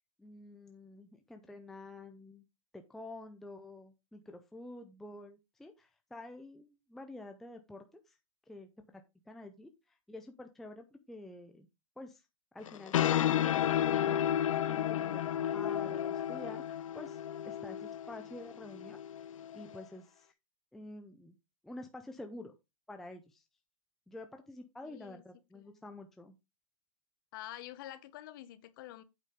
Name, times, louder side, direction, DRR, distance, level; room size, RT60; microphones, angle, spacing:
voice 1, 0.2-2.4 2.7-8.2 8.5-11.7 12.0-12.3 12.5-13.4 14.6-19.0 19.3-20.3 20.7-21.3 21.6-22.5 22.9-23.4 24.1-26.4, left 2 dB, ahead, 0.5 m, -49 dB
sound 1, 12.7-19.8, left 10 dB, 70° left, 0.6 m, -32 dB
voice 2, 24.8-25.2 25.5-25.6 27.3-29.0, left 14 dB, 40° left, 1.1 m, -47 dB
8.4 x 5.2 x 5.1 m
hypercardioid pair, 160°, 18 cm